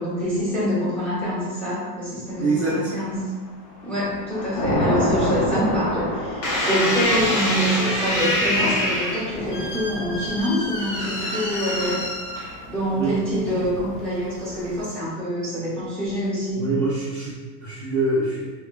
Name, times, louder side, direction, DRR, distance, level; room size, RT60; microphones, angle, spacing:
voice 1, 0.0-3.4 3.8-12.1 12.7-16.7, equal, ahead, -10 dB, 0.7 m, -26 dB
voice 2, 2.4-2.9 12.9-13.2 16.5-18.5, right 2 dB, 35° right, -9 dB, 0.5 m, -25 dB
Thunder / Rain, 2.7-3.3 3.7-14.8, left 1 dB, 35° left, 0.4 m, -30 dB
sound 1, 6.4-12.8 13.5-13.9, left 1 dB, 55° left, 0.8 m, -26 dB
3.0 x 2.2 x 2.2 m, 1.4 s
supercardioid pair, 150°, 48 cm